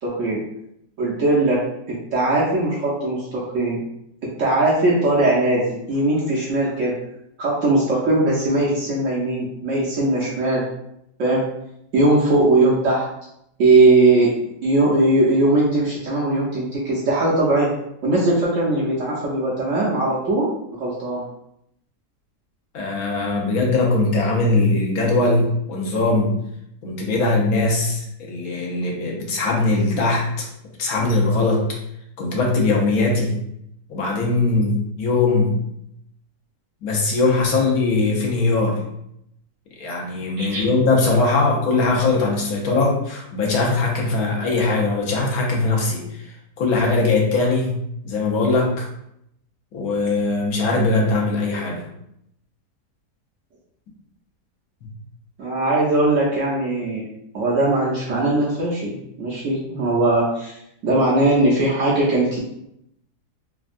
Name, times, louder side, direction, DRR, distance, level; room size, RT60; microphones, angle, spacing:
voice 1, 0.0-0.4 1.0-3.8 4.2-7.0 7.4-10.7 11.2-11.4 11.9-13.1 13.6-14.3 14.6-17.7 18.0-20.5 20.8-21.2 40.4-40.6 55.4-57.0 57.3-60.5 60.8-62.4, right 2 dB, 65° right, -5 dB, 0.8 m, -19 dB
voice 2, 22.7-26.3 26.8-30.5 30.8-31.6 32.2-33.3 33.9-35.6 36.8-38.8 39.8-47.8 48.0-48.9 49.7-51.9, left 3 dB, 70° left, -1 dB, 1.1 m, -20 dB
3.4 x 2.2 x 2.4 m, 0.77 s
omnidirectional pair, 1.7 m